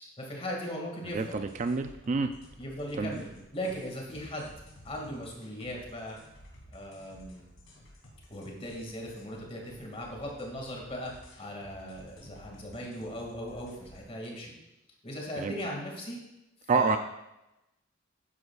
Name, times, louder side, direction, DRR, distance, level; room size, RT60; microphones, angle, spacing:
voice 1, 0.2-1.4 2.6-4.5 4.8-6.2 6.7-7.4 8.3-11.1 11.4-14.5 15.0-16.2 16.7-17.0, equal, 30° left, 0 dB, 2.1 m, -38 dB
sound 1, 1.1-14.1, equal, 75° left, 2.5 m, -54 dB
voice 2, 1.1-2.3 3.0-3.2 15.4-15.5 16.7-17.0, right 4 dB, 35° right, 8 dB, 0.4 m, -28 dB
11.5 x 9.3 x 2.4 m, 0.93 s
head